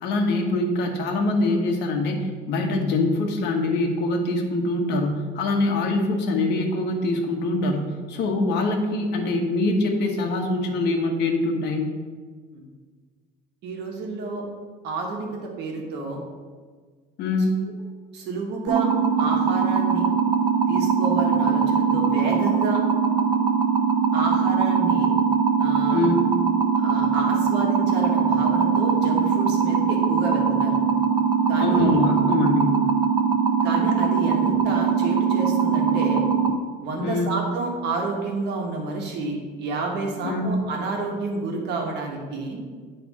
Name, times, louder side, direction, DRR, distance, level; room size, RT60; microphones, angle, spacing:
voice 1, 0.0-11.9 17.2-17.6 25.9-26.3 31.6-32.8 37.0-37.3 40.2-40.5, left 2 dB, 65° left, 3 dB, 1.2 m, -24 dB
voice 2, 13.6-14.4 14.8-16.2 18.1-18.9 19.2-20.0 20.7-22.8 24.1-25.1 25.6-26.0 26.7-30.8 31.5-31.9 33.6-36.2 36.8-42.6, right 3 dB, 65° right, 1 dB, 1.4 m, -29 dB
sound 1, 18.7-36.5, right 6 dB, 25° right, 0.7 m, -21 dB
9.7 x 3.4 x 4.7 m, 1.5 s
cardioid pair, 140°, 19 cm